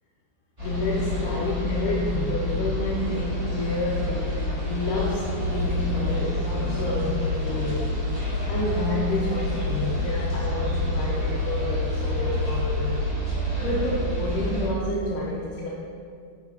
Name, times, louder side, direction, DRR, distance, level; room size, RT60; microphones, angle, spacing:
voice 1, 0.6-8.0 8.4-13.1 13.6-15.7, left 2 dB, 80° left, -4 dB, 2.4 m, -29 dB
sound 1, 0.6-14.7, left 1 dB, 10° right, 1.7 m, -28 dB
8.8 x 5.6 x 4.8 m, 2.3 s
omnidirectional pair, 3.7 m